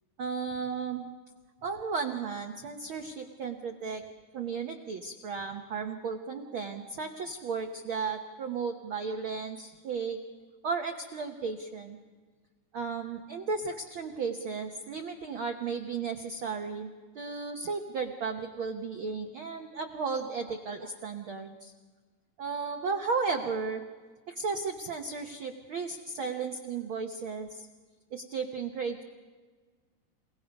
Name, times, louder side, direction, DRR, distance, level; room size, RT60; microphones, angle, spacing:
voice 1, 0.2-1.1 1.6-4.0 4.3-10.2 10.6-12.0 12.7-16.9 17.1-21.7 22.4-23.8 24.3-27.7 28.1-29.0, right 5 dB, 75° right, 4 dB, 1.2 m, -34 dB
29.0 x 18.0 x 5.3 m, 1.4 s
omnidirectional pair, 3.8 m